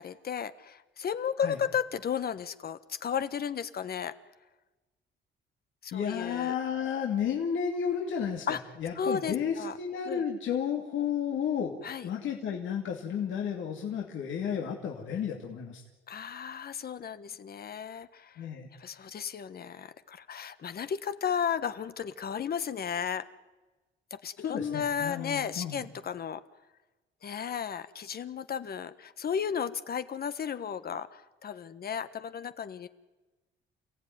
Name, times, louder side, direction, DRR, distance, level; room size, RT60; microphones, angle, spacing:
voice 1, 0.0-4.2 5.8-6.5 8.5-8.6 9.0-9.7 10.1-10.2 11.8-12.1 16.1-18.4 18.8-23.3 24.1-26.4 27.2-32.9, left 7 dB, 50° left, 12 dB, 1.4 m, -34 dB
voice 2, 5.9-8.5 8.8-11.8 12.0-15.8 18.4-18.7 24.4-25.8, left 8 dB, 75° left, 0 dB, 2.7 m, -32 dB
29.0 x 16.0 x 9.5 m, 1.2 s
cardioid pair, 90°, 20 cm